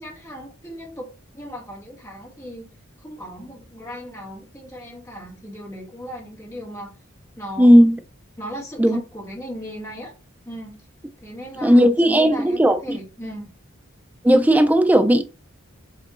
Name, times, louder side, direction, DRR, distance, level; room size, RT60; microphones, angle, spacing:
voice 1, 0.0-2.7 3.0-6.9 7.4-7.8 8.4-10.1 10.4-10.8 11.2-13.5, equal, 15° left, 1.7 m, -37 dB
voice 2, 7.6-8.0 8.8-9.0 11.6-13.0 14.2-15.2, equal, 10° right, 0.4 m, -15 dB
5.5 x 3.4 x 2.5 m
head